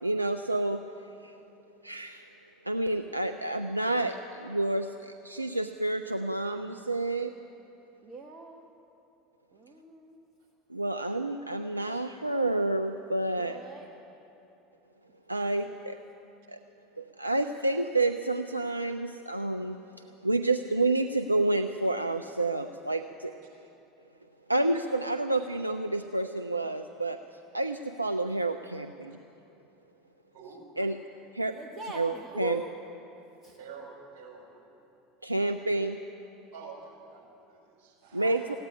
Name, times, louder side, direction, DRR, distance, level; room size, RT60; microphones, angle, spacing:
voice 1, 0.0-0.8 1.2-1.3 1.8-2.3 2.6-7.3 10.7-13.6 15.3-16.0 16.5-16.6 17.0-19.8 20.2-23.3 24.5-27.2 27.5-29.2 30.8-31.0 31.3-31.6 32.0-32.6 35.2-36.0 38.1-38.5, right 2 dB, 90° right, 7 dB, 0.4 m, -29 dB
voice 2, 8.0-8.7 9.5-10.3 13.3-13.9 15.6-15.8 31.5-32.7 33.4-33.6 38.1-38.5, right 3 dB, 30° right, 2 dB, 1.1 m, -41 dB
voice 3, 33.6-34.7 36.5-38.5, right 5 dB, 55° right, -1 dB, 4.6 m, -48 dB
15.5 x 9.5 x 9.9 m, 2.9 s
figure-of-eight pair, 75°, 0 cm